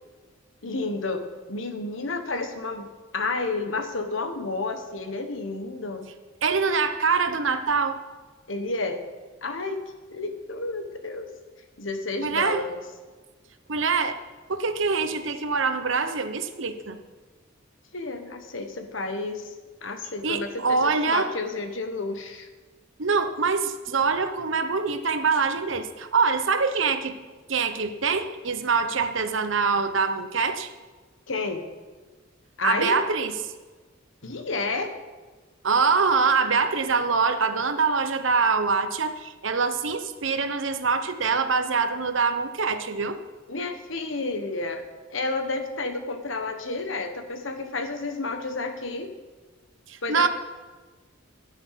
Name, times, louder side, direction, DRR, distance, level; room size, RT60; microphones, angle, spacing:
voice 1, 0.6-6.1 8.5-9.0 9.4-9.8 10.1-11.3 11.8-12.8 17.9-19.5 19.8-22.5 31.3-31.6 32.6-33.0 34.2-34.9 43.5-44.8 45.1-49.1 50.0-50.3, left 3 dB, 75° left, 7 dB, 1.4 m, -31 dB
voice 2, 6.4-8.0 12.2-12.6 13.7-14.2 14.5-17.0 20.2-21.3 23.0-27.2 27.5-30.7 32.6-33.4 35.6-43.2 49.9-50.3, right 5 dB, 75° right, 9 dB, 1.0 m, -24 dB
14.5 x 9.7 x 5.8 m, 1.3 s
head